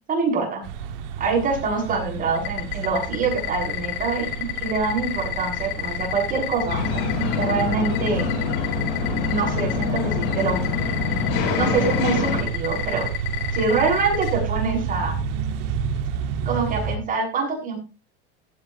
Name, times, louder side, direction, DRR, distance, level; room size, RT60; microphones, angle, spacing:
voice 1, 0.1-0.6 1.2-8.3 9.3-10.6 11.5-13.1 13.5-15.1 16.4-17.8, right 4 dB, 25° right, 0 dB, 7.1 m, -25 dB
sound 1, 0.6-17.0, right 7 dB, 65° right, 1.7 m, -31 dB
sound 2, 2.4-14.3, left 14 dB, 85° left, 5.7 m, -28 dB
sound 3, 6.7-12.4, left 5 dB, 65° left, 7.4 m, -25 dB
16.5 x 12.5 x 3.0 m, 0.30 s
supercardioid pair, 130°, 30 cm